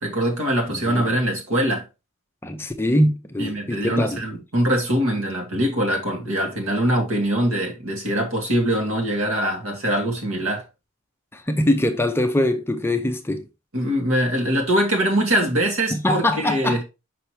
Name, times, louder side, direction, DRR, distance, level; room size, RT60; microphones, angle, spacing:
voice 1, 0.0-1.8 3.4-10.6 13.7-16.8, right 1 dB, 65° right, 2.1 m, -23 dB
voice 2, 0.7-1.1 2.4-4.2 11.3-13.5 15.9-16.8, left 1 dB, 10° left, 0.6 m, -23 dB
5.8 x 5.6 x 3.1 m
head